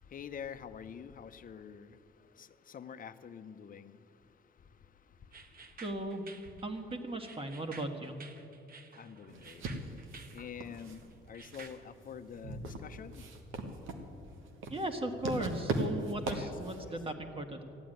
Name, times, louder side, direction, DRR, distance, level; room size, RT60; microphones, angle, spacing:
voice 1, 0.1-2.0 2.3-4.0 9.0-9.6 10.3-13.2 16.3-16.5 16.8-16.9, left 7 dB, 45° left, 10 dB, 0.7 m, -46 dB
sound 1, 5.3-11.7, right 4 dB, 45° right, 1.3 m, -53 dB
voice 2, 5.8-6.3 6.6-8.2 14.7-17.6, right 1 dB, 25° right, 5 dB, 1.7 m, -37 dB
sound 2, 9.3-16.9, right 2 dB, 85° right, 1.5 m, -40 dB
14.5 x 9.3 x 9.1 m, 2.9 s
cardioid pair, 90°, 20 cm